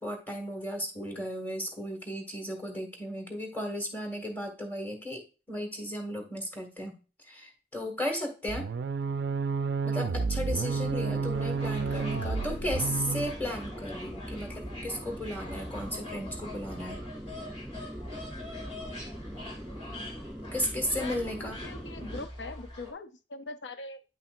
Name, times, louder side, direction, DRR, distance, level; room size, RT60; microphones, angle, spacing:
voice 1, 0.0-5.2 5.5-6.9 7.2-8.7 9.8-17.0 20.5-21.6, equal, 10° left, 2 dB, 1.7 m, -35 dB
sound 1, 8.5-13.4, right 4 dB, 70° right, 0.4 m, -31 dB
sound 2, 10.7-22.3, equal, 5° right, 0.5 m, -42 dB
sound 3, 11.3-22.9, left 1 dB, 35° left, 2.4 m, -44 dB
voice 2, 12.1-12.7 13.1-13.3 21.0-24.0, left 3 dB, 85° left, 9 dB, 0.6 m, -42 dB
9.4 x 5.7 x 2.5 m, 0.32 s
head